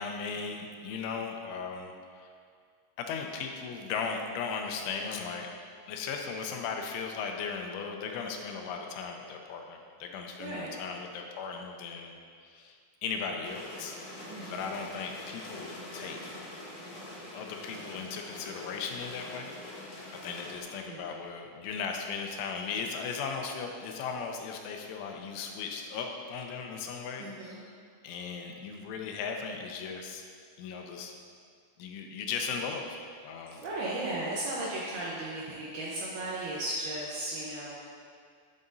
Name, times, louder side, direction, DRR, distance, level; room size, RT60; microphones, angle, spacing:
voice 1, 0.0-1.9 2.2-2.3 3.0-5.5 5.9-12.1 12.5-12.8 13.0-14.0 14.5-16.2 17.3-27.6 28.0-30.2 30.6-31.1 31.8-33.0 33.2-33.6, left 5 dB, 85° left, 3 dB, 3.1 m, -37 dB
voice 2, 10.4-10.8 14.3-14.7 20.8-21.1 27.2-27.6 33.6-37.8, right 1 dB, 75° right, -6 dB, 2.3 m, -36 dB
sound 1, 13.4-20.6, left 1 dB, 55° left, 3.1 m, -44 dB
11.0 x 8.7 x 2.7 m, 2.1 s
omnidirectional pair, 5.5 m